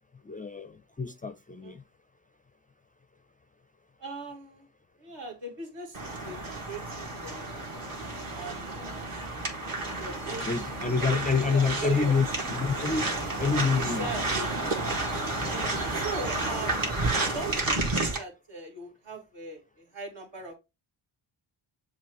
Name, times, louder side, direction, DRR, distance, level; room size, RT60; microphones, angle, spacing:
voice 1, 0.2-1.8 10.4-12.3 12.5-13.1 13.4-14.1 15.4-15.7, left 5 dB, 20° left, 0.4 m, -27 dB
voice 2, 4.0-4.7 5.0-7.6 8.3-9.1 9.7-10.5 11.0-12.1 13.8-14.6 15.3-20.5, right 3 dB, 65° right, 2.2 m, -40 dB
sound 1, 5.9-18.2, right 2 dB, 45° right, 1.7 m, -31 dB
7.1 x 2.5 x 3.0 m
cardioid pair, 60°, 46 cm